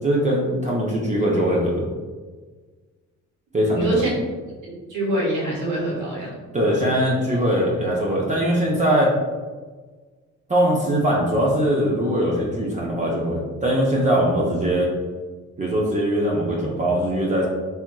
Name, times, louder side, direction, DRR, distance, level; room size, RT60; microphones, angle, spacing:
voice 1, 0.0-1.8 3.5-3.9 6.5-9.1 10.5-14.9 15.6-17.5, equal, 25° right, -4 dB, 0.6 m, -21 dB
voice 2, 3.7-4.1 4.6-6.4, right 1 dB, 85° right, -5 dB, 1.4 m, -25 dB
3.4 x 2.9 x 2.2 m, 1.4 s
cardioid pair, 90°, 30 cm